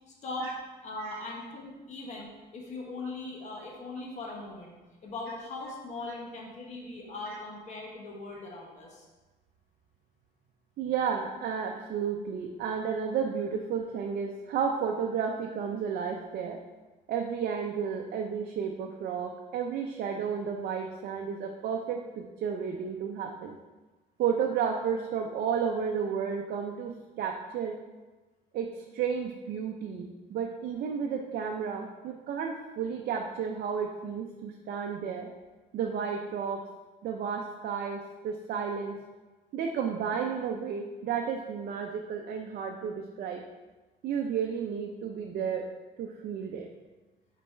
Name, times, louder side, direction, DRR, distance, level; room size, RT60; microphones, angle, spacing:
voice 1, 0.8-4.7 5.0-9.1, left 2 dB, 45° left, -1 dB, 1.2 m, -40 dB
voice 2, 10.8-16.6 17.1-23.6 24.2-27.7 28.5-35.3 35.7-36.6 37.0-38.9 39.5-43.4 44.0-45.6 46.0-46.7, right 7 dB, 65° right, 2 dB, 0.6 m, -32 dB
5.2 x 4.1 x 4.5 m, 1.2 s
cardioid pair, 110°, 17 cm